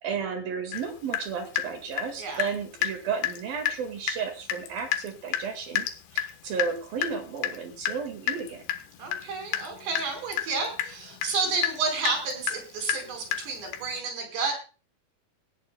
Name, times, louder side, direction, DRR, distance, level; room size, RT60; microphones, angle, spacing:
voice 1, 0.0-5.9 6.1-8.6, right 6 dB, 60° right, 5 dB, 3.5 m, -33 dB
Water tap faucet / Drip, 0.7-0.9 1.1-2.6 2.8-3.0 3.2-3.4 3.7-3.8 4.1-4.2 4.5-14.0, left 11 dB, 85° left, 3.6 m, -31 dB
voice 2, 9.0-14.5, right 4 dB, 80° right, 4 dB, 6.9 m, -31 dB
18.5 x 16.0 x 2.3 m, 0.34 s
omnidirectional pair, 5.0 m